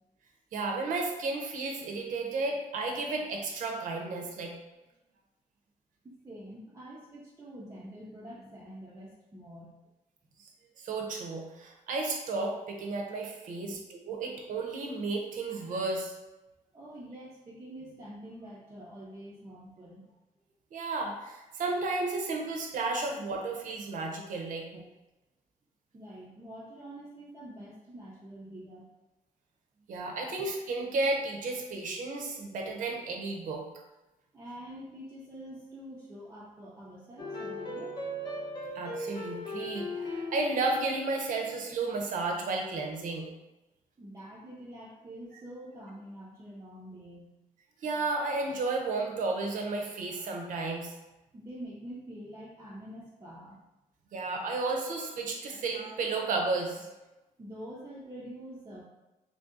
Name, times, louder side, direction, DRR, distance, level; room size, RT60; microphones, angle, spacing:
voice 1, 0.5-4.5 10.8-16.1 20.7-24.8 29.9-33.7 38.7-43.3 47.8-50.9 54.1-56.9, right 3 dB, 70° right, 1 dB, 0.7 m, -33 dB
voice 2, 6.0-9.7 13.6-13.7 16.7-20.0 25.9-28.8 34.3-38.0 44.0-47.3 51.3-53.6 57.4-58.9, right 1 dB, 20° right, -7 dB, 0.4 m, -46 dB
sound 1, 37.2-41.8, left 1 dB, 30° left, 0.6 m, -38 dB
3.2 x 2.7 x 3.6 m, 1.0 s
wide cardioid pair, 170°, 14 cm